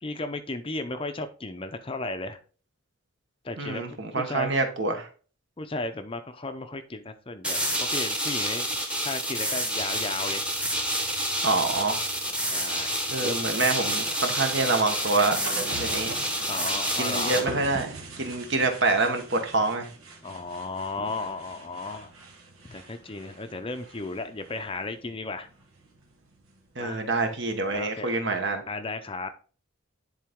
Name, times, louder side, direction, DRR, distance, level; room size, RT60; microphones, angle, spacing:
voice 1, 0.0-2.4 3.4-4.5 5.6-8.7 9.0-10.5 12.4-13.4 16.5-17.5 20.2-22.1 22.6-25.5 26.8-27.0 27.7-28.2 28.7-29.3, left 3 dB, 25° left, 9 dB, 0.5 m, -35 dB
voice 2, 3.6-5.1 11.4-12.0 13.1-15.4 15.8-16.2 17.0-19.8 26.8-28.6, right 3 dB, 60° right, 5 dB, 1.3 m, -26 dB
sound 1, 7.4-17.4, equal, 5° right, 1.0 m, -29 dB
sound 2, 9.8-27.7, right 3 dB, 90° right, 1.5 m, -43 dB
10.5 x 3.9 x 3.6 m, 0.38 s
head